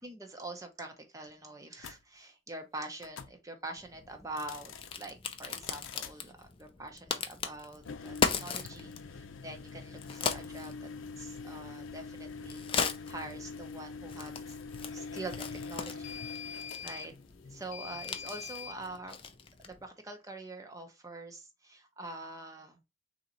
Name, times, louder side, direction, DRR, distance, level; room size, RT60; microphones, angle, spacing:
voice 1, 0.0-10.9 11.2-12.7 13.1-14.6 14.9-17.1 17.5-19.2 19.6-22.8, right 2 dB, 15° right, 0.7 m, -45 dB
sound 1, 1.8-2.0 3.0-3.4 4.3-5.0 5.4-6.2 7.8-18.8, left 5 dB, 90° left, 0.5 m, -44 dB
Crack, 3.8-19.9, left 5 dB, 30° left, 0.4 m, -39 dB
3.8 x 2.8 x 4.0 m
head